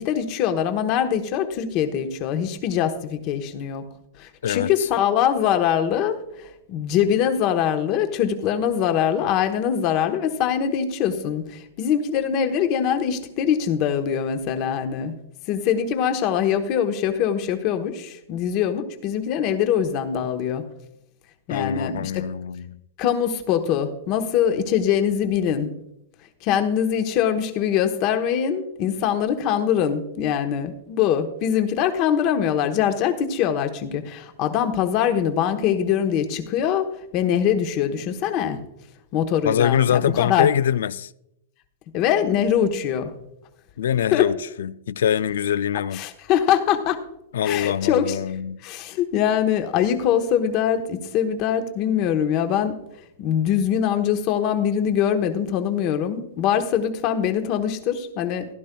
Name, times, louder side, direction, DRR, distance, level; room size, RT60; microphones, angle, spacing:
voice 1, 0.0-3.9 4.2-15.1 15.5-20.6 21.5-22.1 23.0-25.7 26.4-36.9 37.1-38.6 39.1-40.5 41.9-43.1 44.1-44.3 45.9-47.0 47.4-48.2 48.6-52.8 53.2-58.5, left 9 dB, 40° left, 1.1 m, -23 dB
voice 2, 21.5-22.8 39.4-41.1 43.8-46.0 47.3-48.6, left 9 dB, 85° left, 0.3 m, -23 dB
15.5 x 12.0 x 2.3 m
supercardioid pair, 155°, 0 cm